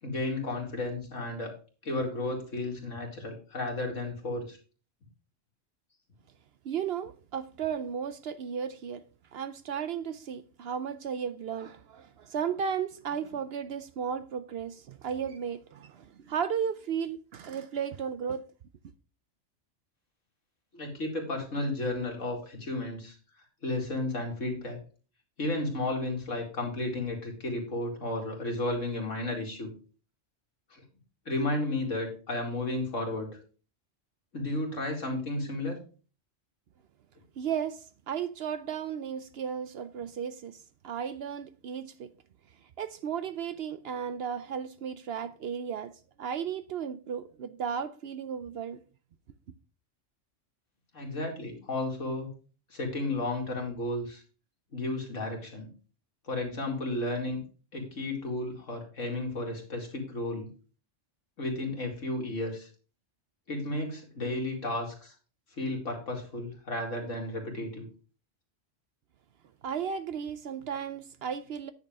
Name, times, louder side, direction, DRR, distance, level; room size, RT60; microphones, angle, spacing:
voice 1, 0.0-1.6 1.8-4.6 20.7-23.2 23.6-24.8 25.4-29.7 30.7-30.8 31.3-33.4 34.3-35.8 50.9-52.3 52.7-54.2 54.7-55.7 56.3-57.4 57.7-60.5 61.4-62.7 63.5-65.1 65.5-67.9, left 2 dB, 80° left, 2.7 m, -33 dB
voice 2, 6.6-9.0 9.3-18.4 37.4-42.1 42.8-48.8 69.6-71.7, right 7 dB, 65° right, 0.7 m, -34 dB
9.9 x 6.5 x 3.6 m
omnidirectional pair, 1.3 m